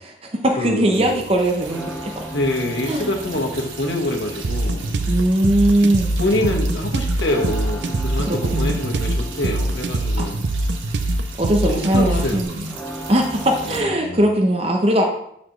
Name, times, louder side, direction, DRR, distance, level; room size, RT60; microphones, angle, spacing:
voice 1, 0.0-2.1 2.9-3.1 5.1-6.5 8.2-8.8 10.2-10.3 11.4-12.7 13.1-15.0, right 1 dB, 30° right, 2 dB, 0.7 m, -20 dB
voice 2, 0.6-1.2 2.3-5.0 6.2-10.4 11.6-12.5 13.6-14.2, left 1 dB, 70° left, 1 dB, 1.3 m, -25 dB
sound 1, 0.9-13.8, right 4 dB, 80° right, 1.4 m, -38 dB
sound 2, 1.7-14.0, right 1 dB, 5° left, 0.6 m, -38 dB
sound 3, 4.4-12.4, right 2 dB, 65° right, 0.5 m, -24 dB
12.0 x 4.2 x 3.1 m, 0.75 s
head